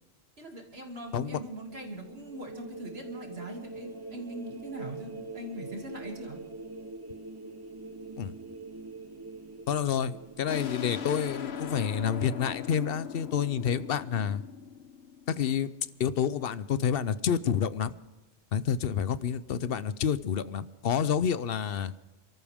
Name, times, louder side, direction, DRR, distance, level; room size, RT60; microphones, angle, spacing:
voice 1, 0.4-6.4, right 1 dB, 80° right, 1 dB, 3.0 m, -41 dB
sound 1, 0.7-12.6, right 3 dB, 25° right, 1.0 m, -45 dB
voice 2, 9.7-14.4 15.3-15.7 16.0-17.9 18.5-21.9, left 8 dB, 70° left, 15 dB, 0.8 m, -29 dB
sound 2, 10.5-15.8, left 8 dB, 85° left, 1.2 m, -39 dB
28.0 x 13.5 x 3.6 m, 1.1 s
omnidirectional pair, 1.0 m